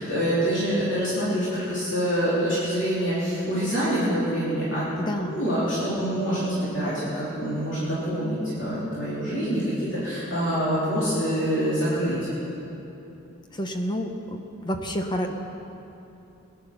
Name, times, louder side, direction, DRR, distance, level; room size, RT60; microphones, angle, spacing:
voice 1, 0.0-4.8 5.3-12.2, equal, 55° left, -10 dB, 3.4 m, -26 dB
voice 2, 5.1-5.4 13.5-14.4 14.6-15.3, equal, 20° left, 4 dB, 0.8 m, -29 dB
19.5 x 10.5 x 5.9 m, 2.9 s
head